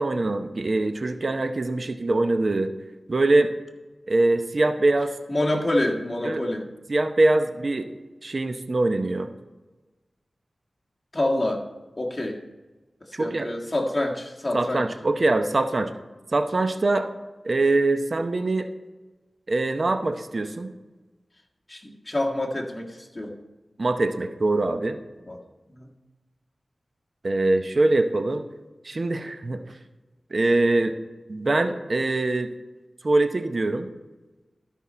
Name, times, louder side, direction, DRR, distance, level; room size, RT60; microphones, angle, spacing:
voice 1, 0.0-2.7 3.1-3.5 4.1-5.1 6.2-6.4 6.9-7.9 8.2-9.3 13.2-13.5 14.5-15.9 16.3-17.1 17.4-18.7 19.5-20.7 23.8-25.0 27.2-28.4 28.8-29.6 30.3-30.9 31.3-32.5 33.0-33.9, right 2 dB, 55° right, 8 dB, 0.7 m, -23 dB
voice 2, 5.3-6.7 11.1-11.6 12.0-12.4 13.2-14.8 21.7-23.3 25.3-25.4 25.7-25.9, left 1 dB, 30° left, -1 dB, 1.7 m, -27 dB
13.5 x 5.5 x 4.2 m, 1.2 s
cardioid pair, 50°, 0 cm